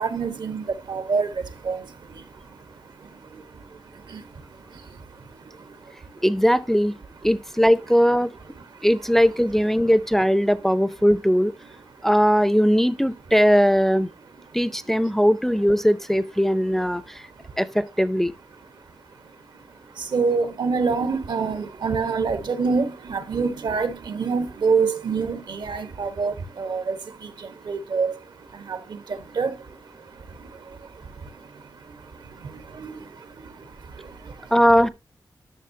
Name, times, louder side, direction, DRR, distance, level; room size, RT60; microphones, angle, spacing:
voice 1, 0.0-6.2 7.3-7.4 8.5-8.9 9.1-9.3 9.8-9.9 11.9-12.1 14.4-14.7 15.0-15.1 17.0-17.6 18.7-34.6, right 5 dB, 80° right, 1.2 m, -29 dB
voice 2, 6.2-7.0 7.2-8.4 8.8-11.5 12.0-14.1 14.5-17.2 17.6-18.3 34.5-34.9, equal, 5° left, 0.4 m, -19 dB
11.0 x 6.4 x 2.7 m
wide cardioid pair, 120°, 7 cm